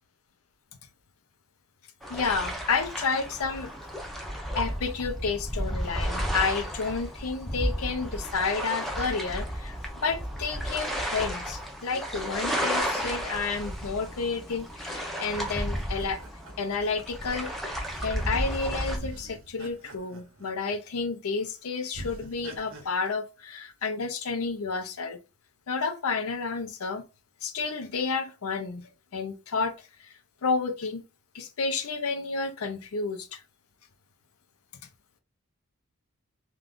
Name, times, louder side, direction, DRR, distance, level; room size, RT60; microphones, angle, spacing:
sound 1, 2.0-19.0, equal, ahead, 0.5 m, -33 dB
voice 1, 2.1-3.7 4.6-16.2 16.6-17.5 18.0-25.2 25.7-27.0 27.4-28.9 29.1-29.7 30.0-30.1 30.4-31.0 31.3-33.4, left 4 dB, 70° left, 0.5 m, -30 dB
sound 2, 12.6-14.4 15.3-17.8 18.5-18.6 19.0-21.0 21.4-21.5 21.9-22.8, right 2 dB, 60° right, 0.6 m, -46 dB
2.5 x 2.4 x 3.4 m
head